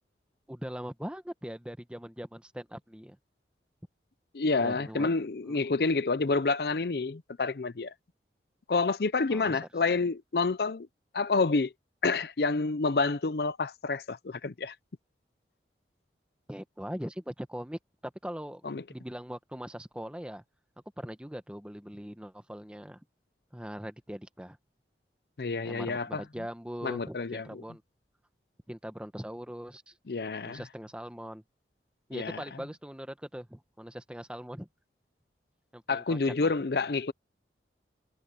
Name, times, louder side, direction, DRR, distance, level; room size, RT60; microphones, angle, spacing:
voice 1, 0.5-3.2 4.5-5.1 5.5-5.6 9.3-9.6 16.5-20.4 21.0-23.0 23.5-24.6 25.6-27.8 28.7-29.9 30.4-31.4 32.1-34.7 35.7-36.5, equal, 5° right, 1.0 m, -41 dB
voice 2, 4.3-7.9 8.7-10.9 11.1-11.7 12.0-14.7 18.6-18.8 25.4-26.2 26.8-27.6 30.1-30.6 32.1-32.4 35.9-37.1, left 3 dB, 60° left, 0.6 m, -28 dB
head